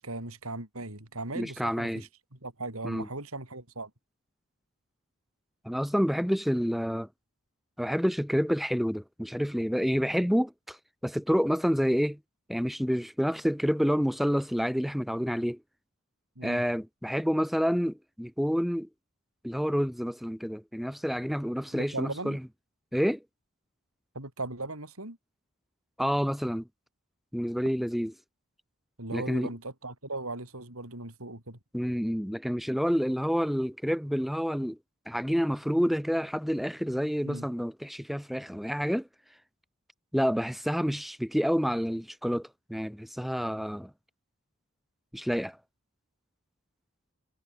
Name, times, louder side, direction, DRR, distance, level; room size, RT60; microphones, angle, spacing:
voice 1, 0.0-3.9 16.3-16.6 21.7-22.4 24.1-25.2 29.0-31.6 37.2-37.5, right 2 dB, 80° right, 6.7 m, -38 dB
voice 2, 1.3-2.0 2.8-3.1 5.6-7.1 7.8-10.8 11.0-12.2 12.5-15.6 16.4-18.9 19.4-22.4 22.9-23.2 26.0-26.7 27.3-28.1 29.1-29.5 31.7-34.8 35.0-39.1 40.1-43.9 45.1-45.6, equal, ahead, 3.4 m, -28 dB
head